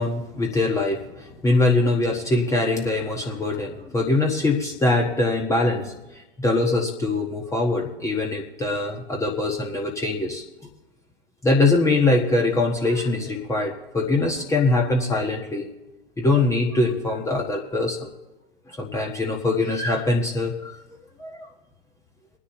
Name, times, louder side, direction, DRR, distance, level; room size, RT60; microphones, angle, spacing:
voice 1, 0.0-5.9 6.4-10.4 11.4-15.7 16.2-18.1 18.8-20.7 21.2-21.5, left 2 dB, 10° left, 0 dB, 1.3 m, -23 dB
24.0 x 9.8 x 3.0 m, 1.0 s
figure-of-eight pair, 100°, 29 cm